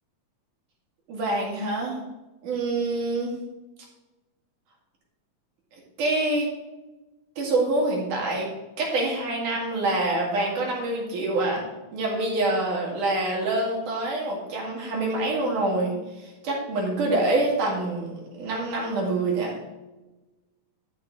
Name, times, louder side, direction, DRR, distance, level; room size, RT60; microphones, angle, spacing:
voice 1, 1.1-2.0 2.4-3.3 6.0-6.5 7.4-8.5 8.8-11.6 11.9-19.5, right 2 dB, 90° right, -2 dB, 3.9 m, -26 dB
12.5 x 6.3 x 3.8 m, 1.1 s
omnidirectional pair, 3.5 m